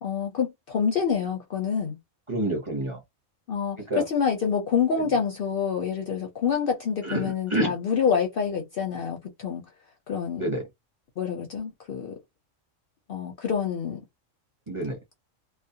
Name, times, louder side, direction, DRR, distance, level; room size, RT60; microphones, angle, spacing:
voice 1, 0.0-2.0 3.5-9.6 10.1-10.4 11.2-12.1 13.1-14.0, left 6 dB, 60° left, 0.6 m, -27 dB
voice 2, 2.3-3.0 3.9-4.0 5.0-5.1 7.0-7.7 10.4-10.6 14.7-15.0, right 1 dB, 30° right, 0.6 m, -28 dB
2.3 x 2.0 x 2.7 m
omnidirectional pair, 1.3 m